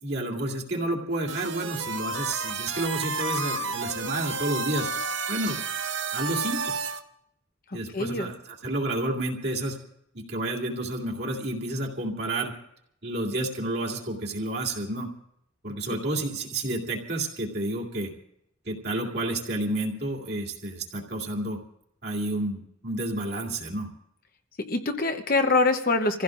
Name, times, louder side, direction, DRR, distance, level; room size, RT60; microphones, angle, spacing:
voice 1, 0.0-4.9 5.3-5.6 6.1-6.7 7.7-9.8 10.1-12.5 13.0-15.1 15.6-18.1 18.7-21.6 22.0-23.9, right 1 dB, 55° right, -1 dB, 2.5 m, -30 dB
sound 1, 1.3-7.0, right 4 dB, 70° right, 0.9 m, -31 dB
voice 2, 7.9-8.3 24.6-26.2, left 3 dB, 45° left, 6 dB, 1.0 m, -24 dB
27.5 x 15.5 x 2.6 m, 0.73 s
head